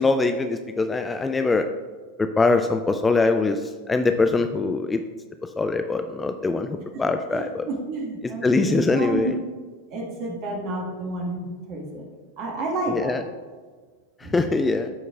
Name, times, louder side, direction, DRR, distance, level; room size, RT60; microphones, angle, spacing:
voice 1, 0.0-1.7 2.2-5.0 5.6-7.7 8.2-9.4 12.9-13.2 14.2-14.9, left 3 dB, 15° left, 7 dB, 0.3 m, -23 dB
voice 2, 7.3-9.3 9.9-12.1 12.4-13.2 14.2-14.4, right 2 dB, 40° right, 1 dB, 1.5 m, -30 dB
13.0 x 4.6 x 2.3 m, 1.5 s
figure-of-eight pair, 90°, 0 cm